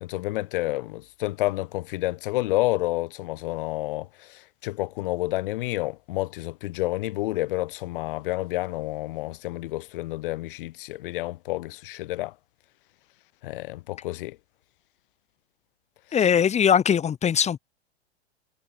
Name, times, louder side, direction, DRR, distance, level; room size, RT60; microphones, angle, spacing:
voice 1, 0.0-12.3 13.4-14.4, left 18 dB, 55° left, 1.0 m, -29 dB
voice 2, 16.1-17.6, left 8 dB, 20° left, 1.8 m, -21 dB
figure-of-eight pair, 100°, 33 cm